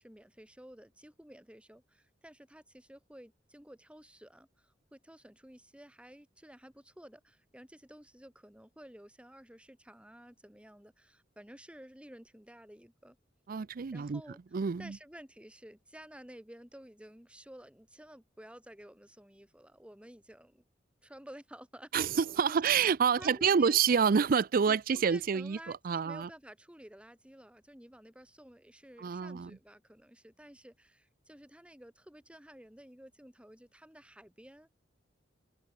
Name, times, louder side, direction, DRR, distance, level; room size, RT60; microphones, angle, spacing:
voice 1, 0.0-13.2 13.9-14.4 14.8-20.6 21.0-21.9 22.4-22.6 23.2-23.8 24.7-34.7, equal, 5° right, 2.9 m, -53 dB
voice 2, 13.5-14.2 14.5-15.0 21.9-26.3 29.0-29.6, right 6 dB, 50° right, 0.5 m, -28 dB
head